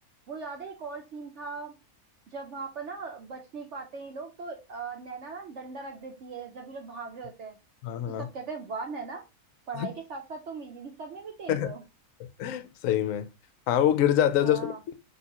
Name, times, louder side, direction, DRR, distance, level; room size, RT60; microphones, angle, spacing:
voice 1, 0.3-1.8 2.3-7.6 8.1-9.2 9.7-11.8 14.4-14.8, right 4 dB, 60° right, 0.9 m, -39 dB
voice 2, 7.8-8.3 9.7-9.9 11.5-11.7 12.4-13.3 13.7-14.9, left 10 dB, 70° left, 0.9 m, -25 dB
6.3 x 2.7 x 2.9 m
omnidirectional pair, 1.7 m